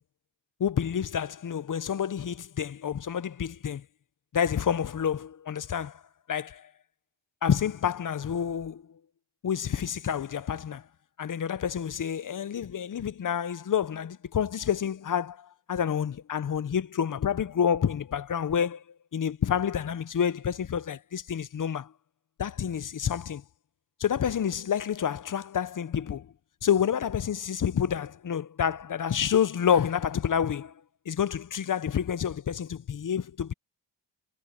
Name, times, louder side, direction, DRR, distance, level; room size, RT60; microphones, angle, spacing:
voice 1, 0.6-3.8 4.3-6.0 6.3-6.7 7.4-8.8 9.4-10.8 11.2-18.8 19.1-21.9 22.4-23.4 24.0-26.3 26.6-30.7 31.1-33.5, left 8 dB, 45° left, 0.6 m, -28 dB
wide cardioid pair, 110°, 43 cm